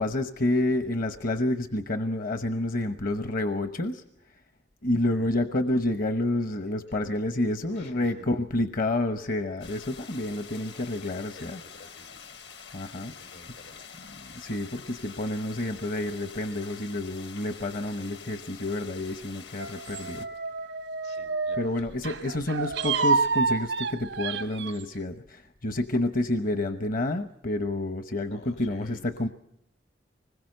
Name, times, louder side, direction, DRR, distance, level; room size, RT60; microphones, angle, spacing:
voice 1, 0.0-4.0 4.8-11.6 12.7-13.1 14.2-20.2 21.6-29.3, left 1 dB, 55° left, 8 dB, 1.0 m, -29 dB
voice 2, 7.7-8.3 11.3-12.5 12.9-13.8 20.9-21.9 28.3-29.0, left 1 dB, 90° left, 6 dB, 4.2 m, -51 dB
sound 1, 9.6-20.3, left 7 dB, 70° left, 1.5 m, -46 dB
sound 2, 19.6-21.7 22.0-24.8, right 4 dB, 90° right, 1.1 m, -28 dB
25.5 x 21.0 x 6.6 m, 0.74 s
head